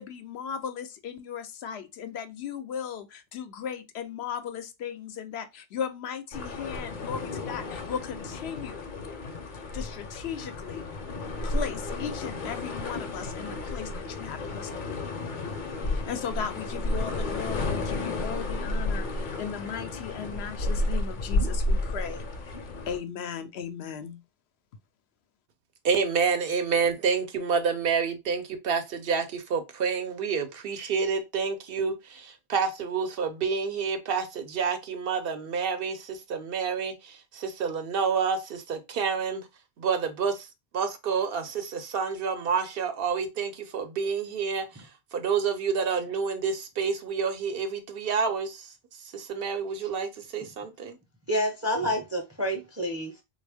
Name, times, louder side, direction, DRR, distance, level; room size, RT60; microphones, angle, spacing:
voice 1, 0.0-8.9 9.7-10.9 11.4-15.0 15.8-24.2, left 8 dB, 85° left, 0.8 m, -37 dB
sound 1, 6.3-23.0, left 2 dB, 55° left, 0.7 m, -32 dB
voice 2, 25.8-39.4 39.8-40.5 40.7-48.7 49.1-51.0, right 6 dB, 70° right, 0.8 m, -28 dB
voice 3, 51.3-53.2, equal, 20° right, 0.5 m, -29 dB
3.4 x 2.3 x 3.4 m
omnidirectional pair, 1.1 m